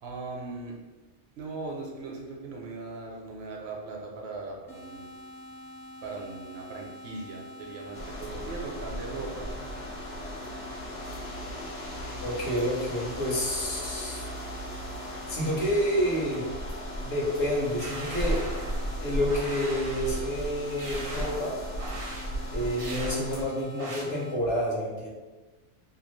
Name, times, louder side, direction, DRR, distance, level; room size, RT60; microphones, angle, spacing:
voice 1, 0.0-0.8 1.4-5.1 6.0-9.5, right 3 dB, 70° right, -1 dB, 0.8 m, -39 dB
sound 1, 4.7-24.4, left 1 dB, 20° left, 0.5 m, -46 dB
sound 2, 7.9-23.4, equal, 85° left, 1.1 m, -36 dB
voice 2, 12.2-14.3 15.3-16.5 17.0-18.4 19.0-21.6 22.5-25.1, equal, 65° left, -4 dB, 1.0 m, -29 dB
sound 3, 17.8-18.9 19.3-20.2 20.8-21.4 21.8-22.3 22.8-23.2 23.8-24.0, right 2 dB, 40° right, 0.5 m, -39 dB
2.8 x 2.3 x 3.0 m, 1.2 s
omnidirectional pair, 1.2 m